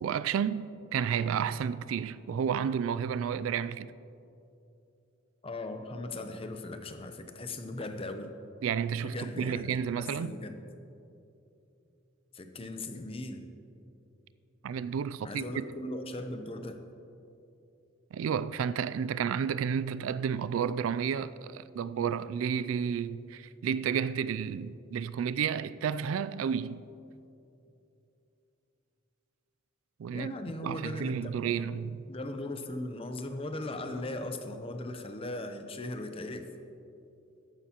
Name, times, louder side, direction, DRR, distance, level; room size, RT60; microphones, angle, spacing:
voice 1, 0.0-3.9 8.6-10.4 14.6-15.4 18.1-26.9 30.0-30.3 30.6-32.0, right 7 dB, 80° right, 0.3 m, -31 dB
voice 2, 5.4-8.3 9.0-9.8 10.1-10.6 12.3-13.5 15.2-16.8 30.1-31.6 32.0-36.5, left 1 dB, 30° left, 0.7 m, -38 dB
14.0 x 11.5 x 2.9 m
head